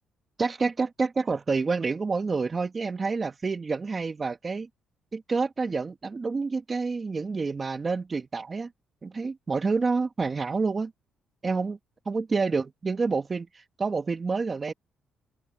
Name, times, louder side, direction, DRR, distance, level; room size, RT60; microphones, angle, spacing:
voice 1, 0.4-4.7 5.1-8.7 9.0-10.9 11.4-11.8 12.0-13.5 13.8-14.7, right 4 dB, 35° right, 1.4 m, -28 dB
open air
cardioid pair, 90°, 0 cm